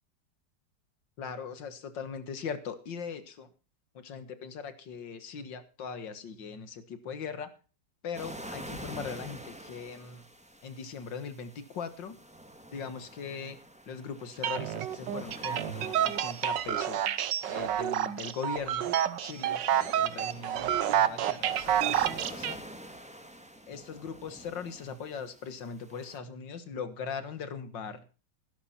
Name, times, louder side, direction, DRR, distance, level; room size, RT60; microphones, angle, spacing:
voice 1, 1.2-3.5 3.9-7.5 8.0-10.3 10.6-12.2 12.7-13.6 13.9-17.0 17.5-19.6 20.0-22.6 23.7-28.1, left 6 dB, 85° left, 11 dB, 2.2 m, -40 dB
sound 1, 8.1-26.2, right 1 dB, 5° right, 1.5 m, -48 dB
sound 2, 14.4-22.5, right 10 dB, 85° right, 1.6 m, -29 dB
16.0 x 12.0 x 4.3 m, 0.35 s
omnidirectional pair, 1.9 m